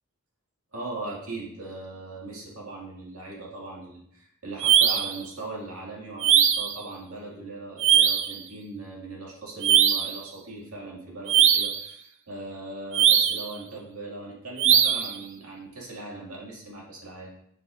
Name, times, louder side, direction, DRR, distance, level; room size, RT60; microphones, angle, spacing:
voice 1, 0.7-17.3, right 2 dB, 80° right, -3 dB, 2.1 m, -39 dB
sound 1, 4.6-5.2 6.2-6.8 7.8-8.4 9.6-10.2 11.3-11.8 12.9-13.5 14.6-15.1, right 9 dB, 60° right, 0.4 m, -20 dB
7.5 x 5.9 x 2.5 m, 0.71 s
head